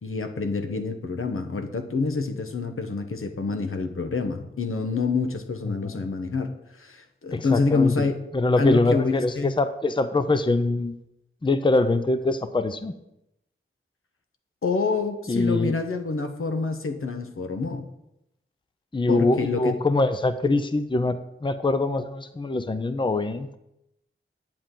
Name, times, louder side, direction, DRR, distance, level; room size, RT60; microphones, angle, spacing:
voice 1, 0.0-8.1 8.6-9.6 14.6-17.9 19.1-19.8, left 4 dB, 80° left, 7 dB, 1.1 m, -27 dB
voice 2, 5.7-6.0 7.3-8.0 8.3-11.0 11.4-12.9 15.3-15.7 18.9-23.6, left 2 dB, 25° left, 11 dB, 0.6 m, -24 dB
10.5 x 8.8 x 3.8 m, 0.85 s
wide cardioid pair, 70°, 21 cm